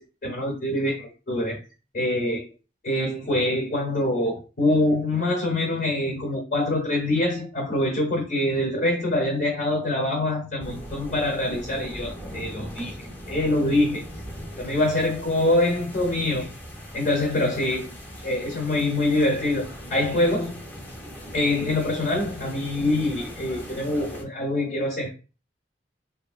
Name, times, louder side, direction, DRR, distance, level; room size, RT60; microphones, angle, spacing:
voice 1, 0.2-1.6 1.9-2.5 2.8-12.9 13.3-14.0 14.6-16.5 16.9-17.9 18.2-19.6 19.9-20.5 21.3-25.1, left 1 dB, 55° left, -1 dB, 0.8 m, -24 dB
sound 1, 10.6-24.2, equal, 10° left, 0.6 m, -40 dB
3.0 x 2.5 x 2.4 m, 0.33 s
head